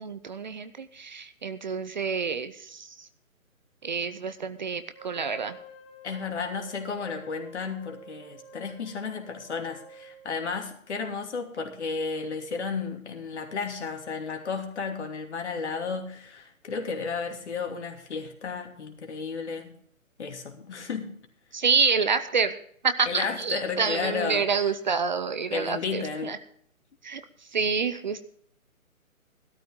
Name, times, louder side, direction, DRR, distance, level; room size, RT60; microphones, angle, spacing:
voice 1, 0.0-2.9 3.8-5.6 21.5-22.5 22.8-26.4 27.0-27.2 27.5-28.3, right 5 dB, 35° right, 12 dB, 0.7 m, -28 dB
Wind instrument woodwind instrument, 4.9-10.5, right 2 dB, 20° left, 1.5 m, -49 dB
voice 2, 6.0-19.7 20.2-21.1 23.1-24.7 25.5-26.4, left 5 dB, 50° left, 3 dB, 2.7 m, -33 dB
15.0 x 13.0 x 3.7 m, 0.64 s
figure-of-eight pair, 150°, 42 cm